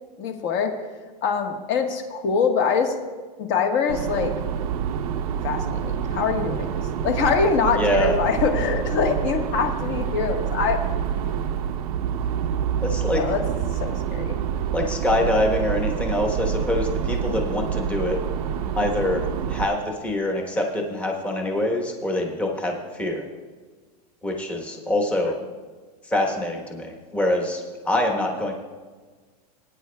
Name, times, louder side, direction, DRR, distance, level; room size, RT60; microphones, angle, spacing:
voice 1, 0.2-0.7 1.2-3.0 3.4-4.4 5.4-6.7 7.0-10.8 13.1-13.4 13.7-14.4 25.2-25.3, left 5 dB, 40° left, 4 dB, 1.4 m, -24 dB
sound 1, 3.9-19.6, right 8 dB, 65° right, 0.7 m, -27 dB
voice 2, 7.8-8.1 12.8-13.2 14.7-18.2 18.7-23.3 24.2-25.4 26.1-28.5, left 1 dB, 5° left, 1 dB, 1.1 m, -25 dB
21.0 x 9.5 x 2.3 m, 1.4 s
supercardioid pair, 170°, 20 cm